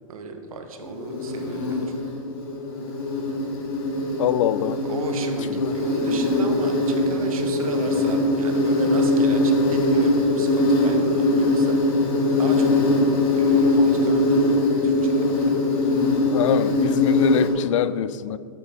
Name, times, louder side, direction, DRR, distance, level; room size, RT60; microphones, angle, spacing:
voice 1, 0.1-1.8 4.9-11.8 12.4-12.8 13.3-15.5, right 4 dB, 80° right, 1.2 m, -35 dB
Insect, 0.8-17.5, left 2 dB, 35° left, 1.6 m, -21 dB
voice 2, 4.2-4.8 5.6-5.8 16.3-18.4, left 10 dB, 60° left, 0.4 m, -24 dB
9.0 x 8.0 x 3.8 m
hypercardioid pair, 150°, 18 cm